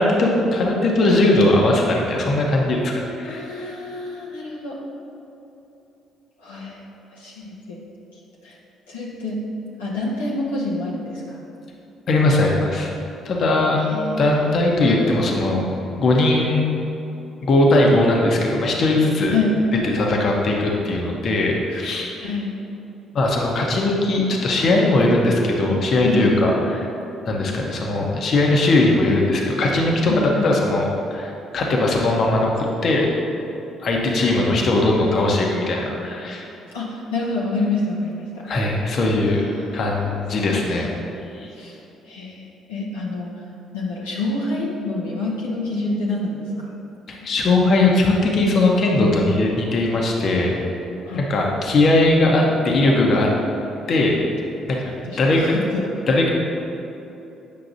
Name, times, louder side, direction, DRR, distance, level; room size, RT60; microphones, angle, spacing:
voice 1, 0.0-3.4 12.1-12.9 13.2-13.9 14.2-16.7 17.4-19.3 19.8-22.1 23.1-26.9 27.3-33.1 33.8-36.5 38.4-39.4 39.7-40.9 41.3-41.5 47.1-50.6 51.1-53.3 53.9-54.2 54.7-55.4 56.1-56.3, left 2 dB, 55° left, -1 dB, 0.9 m, -19 dB
voice 2, 3.2-4.8 6.4-7.9 8.1-8.6 8.9-9.4 9.8-11.4 13.8-14.2 19.3-19.6 21.7-21.8 22.2-22.5 26.0-26.3 30.1-30.5 36.7-38.7 39.2-40.8 41.5-43.4 43.7-46.8 51.0-51.4 55.0-55.8, left 2 dB, 90° left, -6 dB, 0.8 m, -28 dB
8.5 x 5.7 x 2.6 m, 2.9 s
hypercardioid pair, 50°, 0 cm